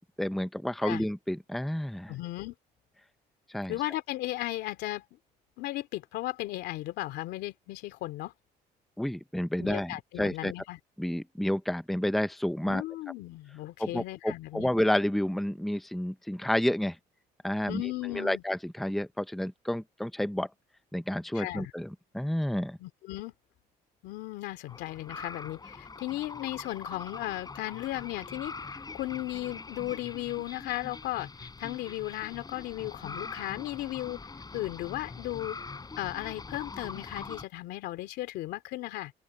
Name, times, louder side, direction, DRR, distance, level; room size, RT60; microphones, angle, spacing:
voice 1, 0.2-2.2 3.5-3.8 9.0-10.5 11.0-12.8 13.8-17.0 17.4-17.8 18.1-20.5 20.9-22.8, left 1 dB, ahead, 0.8 m, -30 dB
voice 2, 2.1-2.5 3.7-5.0 5.6-8.3 9.6-10.8 12.7-14.7 17.7-18.4 21.3-21.7 22.8-23.3 24.0-34.2 34.5-35.6 36.0-39.1, left 16 dB, 85° left, 2.8 m, -36 dB
sound 1, 24.7-37.5, left 4 dB, 25° left, 7.2 m, -43 dB
open air
cardioid pair, 110°, 17 cm